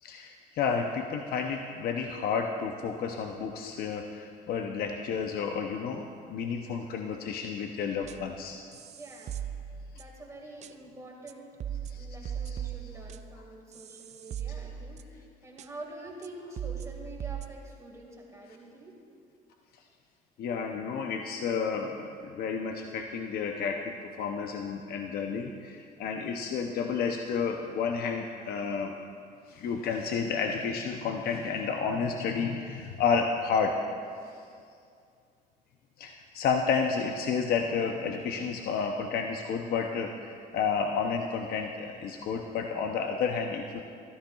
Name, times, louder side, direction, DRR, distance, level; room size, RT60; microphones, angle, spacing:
voice 1, 0.0-8.6 11.9-12.1 12.5-12.6 20.4-28.9 29.5-33.8 34.3-34.4 36.0-43.8, left 5 dB, 65° left, 3 dB, 0.7 m, -31 dB
sound 1, 8.0-8.4 8.7-10.2 10.6-10.7 11.3-11.4 11.6-15.3 15.6-15.7 16.2-16.3 16.6-17.5, right 9 dB, 40° right, 0.4 m, -39 dB
voice 2, 8.9-9.4 9.9-11.6 11.9-19.0, right 2 dB, 20° right, -1 dB, 1.9 m, -46 dB
14.0 x 13.0 x 2.3 m, 2.4 s
cardioid pair, 110°, 17 cm